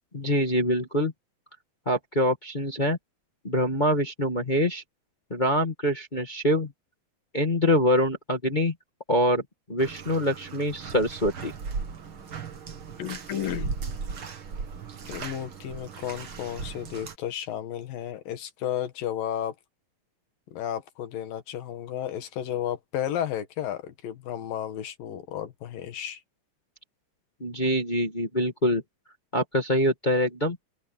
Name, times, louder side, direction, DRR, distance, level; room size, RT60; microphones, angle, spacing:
voice 1, 0.1-1.1 1.8-3.0 3.4-4.8 5.3-6.7 7.3-8.7 9.1-9.4 9.7-11.5 27.4-28.8 29.3-30.6, equal, 20° left, 1.3 m, -24 dB
Bathtub (filling or washing), 9.8-17.2, right 5 dB, 45° right, 2.3 m, -37 dB
voice 2, 13.0-13.7 15.1-19.5 20.5-26.2, left 10 dB, 90° left, 3.4 m, -33 dB
open air
omnidirectional pair, 3.9 m